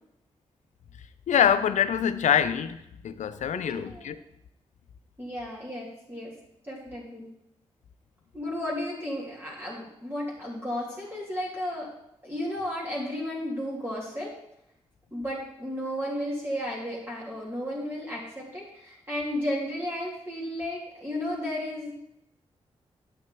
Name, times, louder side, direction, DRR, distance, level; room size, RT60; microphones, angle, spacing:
voice 1, 1.3-4.2, left 8 dB, 80° left, 12 dB, 0.6 m, -25 dB
voice 2, 3.5-4.1 5.2-6.3 6.6-7.3 8.3-11.9 12.2-14.3 15.1-21.9, left 1 dB, 20° right, -5 dB, 3.1 m, -33 dB
9.2 x 5.8 x 4.6 m, 0.79 s
supercardioid pair, 45°, 12 cm